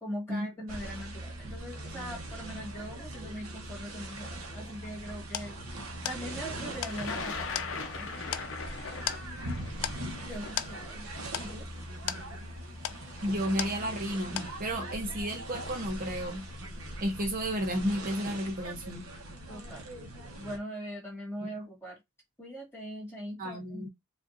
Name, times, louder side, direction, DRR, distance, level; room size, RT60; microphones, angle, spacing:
voice 1, 0.0-5.6 6.0-8.1 10.2-11.1 11.3-11.7 19.5-19.9 20.4-22.0 22.4-23.9, equal, 10° left, 2.0 m, -41 dB
sound 1, 0.7-20.6, right 1 dB, 85° right, 1.0 m, -41 dB
sound 2, 4.7-14.1 14.4-14.9, left 12 dB, 90° left, 0.4 m, -39 dB
Thunder, 6.9-12.9 13.8-13.9 15.0-15.3 15.6-16.1, left 4 dB, 65° left, 0.8 m, -41 dB
voice 2, 13.2-16.5 17.0-19.1 23.4-23.9, equal, 40° right, 0.8 m, -32 dB
4.9 x 2.5 x 2.6 m
head